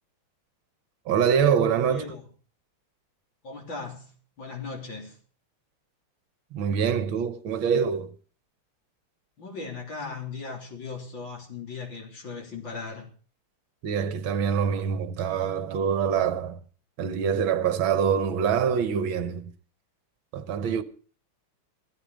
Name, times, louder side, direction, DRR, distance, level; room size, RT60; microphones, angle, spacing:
voice 1, 1.1-2.0 6.5-8.1 13.8-16.6 17.0-19.5 20.3-20.8, right 7 dB, 70° right, 1.7 m, -25 dB
voice 2, 1.9-2.2 3.4-5.2 9.4-13.1, left 4 dB, 60° left, 4.2 m, -38 dB
15.5 x 13.5 x 5.1 m
omnidirectional pair, 2.4 m